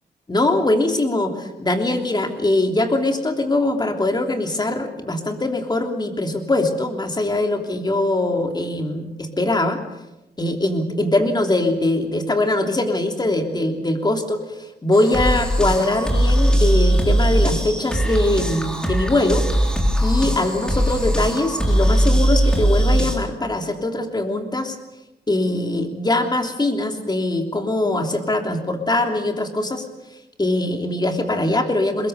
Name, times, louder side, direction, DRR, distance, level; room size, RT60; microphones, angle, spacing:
voice 1, 0.3-9.8 10.4-19.4 20.0-24.8 25.3-29.8 30.4-32.1, left 2 dB, 25° left, 4 dB, 3.2 m, -22 dB
sound 1, 14.9-23.2, right 1 dB, 5° left, 3.7 m, -19 dB
23.0 x 21.5 x 6.8 m, 0.96 s
wide cardioid pair, 100°, 17 cm